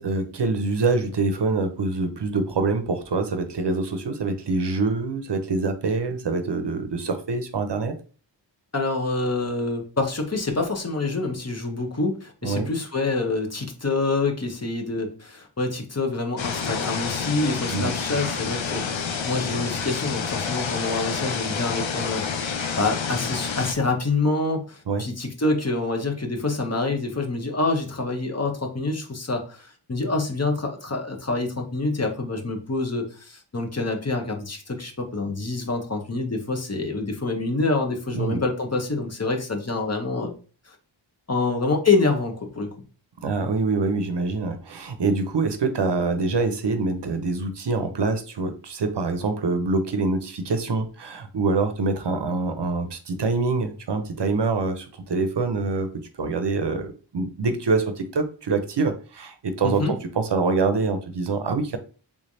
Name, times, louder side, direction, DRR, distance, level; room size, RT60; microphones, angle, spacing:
voice 1, 0.0-7.9 12.4-12.7 17.7-17.9 24.9-25.0 38.1-38.4 43.2-55.9 56.2-61.8, right 3 dB, 60° right, 8 dB, 0.6 m, -25 dB
voice 2, 8.7-40.3 40.7-40.8 41.3-42.7 59.6-59.9, left 3 dB, 35° left, 2 dB, 0.8 m, -26 dB
sound 1, 16.4-23.7, left 6 dB, 75° left, 0.6 m, -29 dB
3.5 x 3.2 x 2.6 m, 0.38 s
wide cardioid pair, 40°, 46 cm